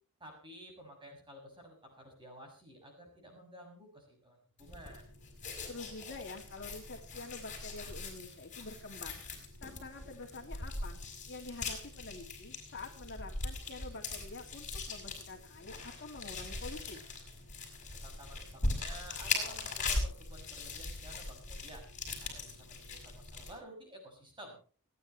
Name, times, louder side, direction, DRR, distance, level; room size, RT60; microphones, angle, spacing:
voice 1, 0.2-5.1 18.0-21.8 22.2-24.6, equal, 20° right, 2 dB, 6.8 m, -52 dB
sound 1, 4.6-23.5, left 3 dB, 35° left, 5.5 m, -40 dB
voice 2, 5.7-11.0 11.3-17.0, left 3 dB, 55° left, 3 dB, 2.5 m, -47 dB
29.5 x 9.9 x 3.2 m, 0.38 s
head